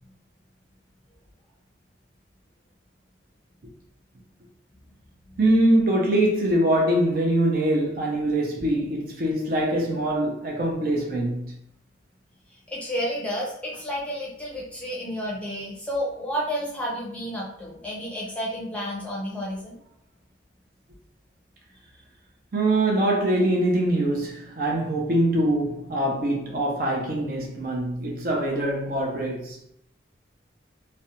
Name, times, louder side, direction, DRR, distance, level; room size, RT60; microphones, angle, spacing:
voice 1, 5.4-11.4 22.5-29.6, right 1 dB, 50° right, 0.5 m, -23 dB
voice 2, 12.7-19.8, equal, 5° left, 0.6 m, -31 dB
2.4 x 2.1 x 2.8 m
head